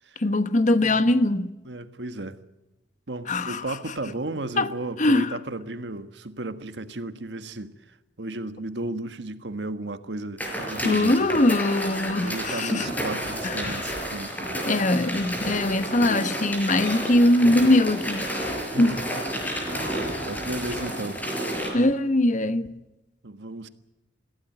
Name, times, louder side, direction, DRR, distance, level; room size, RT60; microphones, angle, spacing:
voice 1, 0.2-1.5 3.3-3.8 4.6-4.7 5.0-5.4 10.8-12.9 13.4-13.8 14.7-18.3 18.8-19.0 21.7-22.8, left 1 dB, 45° left, 1.2 m, -22 dB
voice 2, 0.8-1.1 1.6-2.4 3.1-11.4 12.2-14.5 18.7-19.1 19.7-21.2 23.2-23.7, right 2 dB, 80° right, 1.5 m, -34 dB
sound 1, 10.4-21.7, equal, 10° left, 5.4 m, -31 dB
22.5 x 16.0 x 9.0 m
head